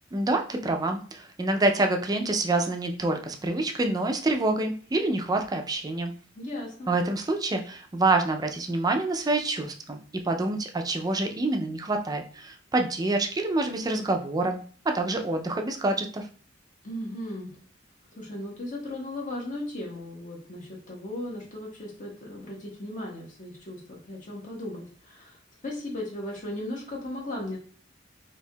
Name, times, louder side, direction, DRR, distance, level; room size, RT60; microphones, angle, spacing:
voice 1, 0.1-6.1 6.9-10.0 10.2-14.6 14.9-16.3, right 2 dB, 20° right, 4 dB, 0.4 m, -27 dB
voice 2, 6.4-6.9 16.8-17.5 18.2-25.4 25.6-27.6, left 1 dB, 45° left, -2 dB, 0.9 m, -36 dB
4.3 x 2.8 x 2.2 m, 0.43 s
head